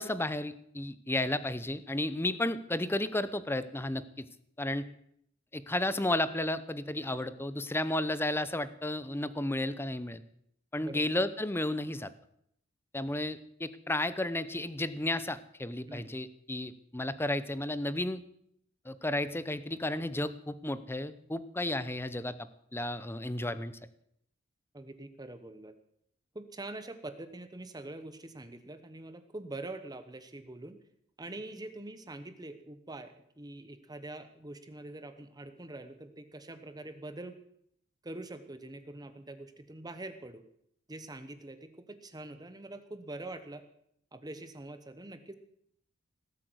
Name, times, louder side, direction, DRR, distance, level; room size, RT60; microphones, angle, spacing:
voice 1, 0.0-4.3 4.6-4.9 5.5-10.2 10.7-12.1 12.9-18.2 18.8-22.3 22.7-23.7, left 1 dB, 10° left, 14 dB, 0.7 m, -33 dB
voice 2, 10.8-11.3 15.9-16.1 24.7-25.7 26.3-30.8 31.2-37.4 38.0-40.4 40.9-43.6 44.1-45.4, right 2 dB, 20° right, 10 dB, 1.0 m, -44 dB
18.0 x 8.4 x 7.9 m, 0.72 s
head